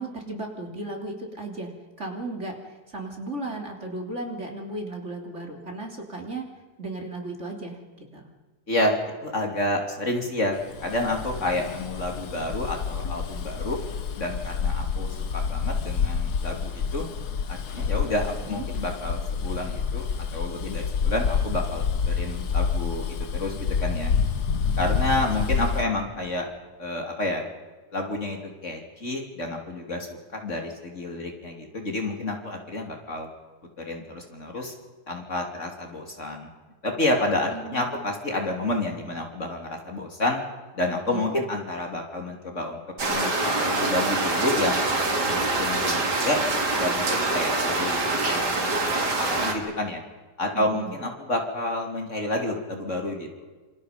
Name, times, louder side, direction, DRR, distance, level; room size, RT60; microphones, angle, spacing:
voice 1, 0.0-1.7 2.0-6.5 6.8-8.2 18.5-18.6 25.4-25.5 37.5-38.0 41.1-41.3 50.5-51.0, right 2 dB, 45° right, 1 dB, 3.6 m, -35 dB
voice 2, 8.7-13.8 14.2-17.1 17.5-24.1 24.8-26.5 26.8-27.5 27.9-33.3 33.9-34.7 35.1-36.5 36.8-40.4 40.7-42.8 43.1-45.0 45.2-46.4 46.8-50.0 50.4-53.5, left 1 dB, 45° left, 2 dB, 3.4 m, -29 dB
Bus, 10.7-25.9, left 6 dB, 75° left, 1.7 m, -28 dB
sound 1, 43.0-49.5, right 2 dB, 85° right, 3.3 m, -25 dB
27.5 x 26.5 x 5.3 m, 1.3 s
omnidirectional pair, 1.7 m